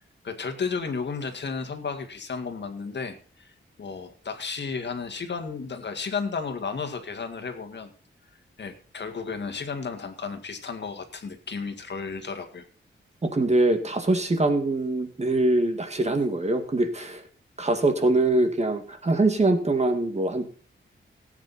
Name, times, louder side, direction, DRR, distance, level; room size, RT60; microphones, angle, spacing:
voice 1, 0.0-7.9 8.6-12.6, left 5 dB, 60° left, 7 dB, 2.0 m, -33 dB
voice 2, 13.2-17.2 17.6-20.5, right 2 dB, 30° right, 6 dB, 2.1 m, -23 dB
18.0 x 8.9 x 4.2 m, 0.40 s
wide cardioid pair, 125°, 21 cm